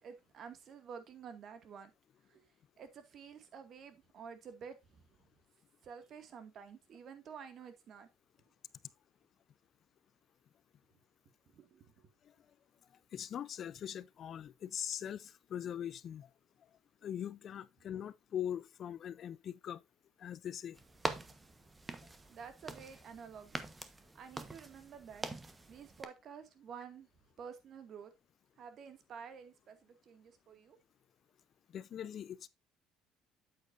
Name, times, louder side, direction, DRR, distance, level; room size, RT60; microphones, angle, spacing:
voice 1, 0.0-1.9 2.3-2.4 2.8-5.1 5.8-8.1 11.5-11.9 21.3-21.4 22.3-23.7 24.1-25.3 25.7-27.1 27.4-28.1 28.6-30.8, right 6 dB, 50° right, 2.1 m, -50 dB
voice 2, 13.1-16.3 17.0-19.8 20.2-20.8 31.7-32.5, left 9 dB, 50° left, 0.6 m, -41 dB
sound 1, 20.7-26.0, right 2 dB, 20° right, 1.2 m, -44 dB
8.7 x 8.3 x 2.6 m
cardioid pair, 100°, 0 cm